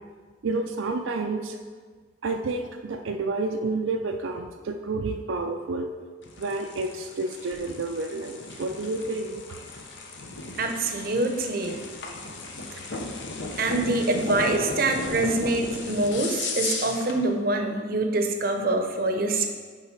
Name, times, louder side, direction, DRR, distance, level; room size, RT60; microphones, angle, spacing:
voice 1, 0.4-1.6 2.2-5.9 6.4-9.4, right 3 dB, 80° right, 4 dB, 0.5 m, -30 dB
sound 1, 6.2-17.2, left 3 dB, 65° left, 0.9 m, -36 dB
voice 2, 10.6-11.8 13.6-19.5, right 2 dB, 50° right, 4 dB, 0.7 m, -25 dB
10.5 x 3.7 x 4.5 m, 1.5 s
head